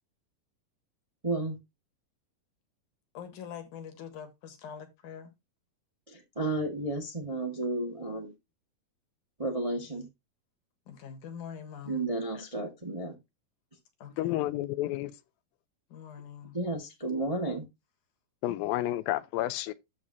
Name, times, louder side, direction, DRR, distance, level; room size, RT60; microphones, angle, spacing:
voice 1, 1.2-1.6 6.1-8.3 9.4-10.1 11.8-13.1 16.5-17.6, right 2 dB, 20° right, 0.8 m, -32 dB
voice 2, 3.1-5.3 10.9-12.0 14.0-14.4 15.9-16.6 18.5-18.6, left 8 dB, 65° left, 2.8 m, -44 dB
voice 3, 14.2-15.1 18.4-19.7, left 15 dB, 85° left, 2.4 m, -30 dB
13.0 x 4.8 x 2.8 m
omnidirectional pair, 4.1 m